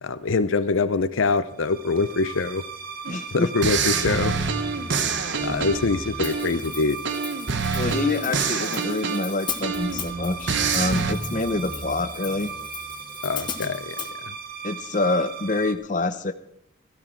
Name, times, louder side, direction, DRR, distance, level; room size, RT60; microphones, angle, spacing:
voice 1, 0.0-2.6 3.3-4.3 5.4-7.0 13.2-14.0 14.3-14.4, left 4 dB, 85° left, 13 dB, 0.7 m, -24 dB
sound 1, 1.6-15.7, right 4 dB, 50° right, 1.0 m, -36 dB
sound 2, 3.0-3.2 3.6-6.7 7.0-10.1 10.5-11.1, right 5 dB, 70° right, 0.9 m, -26 dB
voice 2, 3.1-3.5 7.7-12.5 14.6-16.3, left 2 dB, 40° left, 9 dB, 0.7 m, -26 dB
Hi-hat, 6.2-14.1, left 8 dB, 25° left, 1.0 m, -38 dB
13.5 x 12.5 x 4.5 m, 0.76 s
head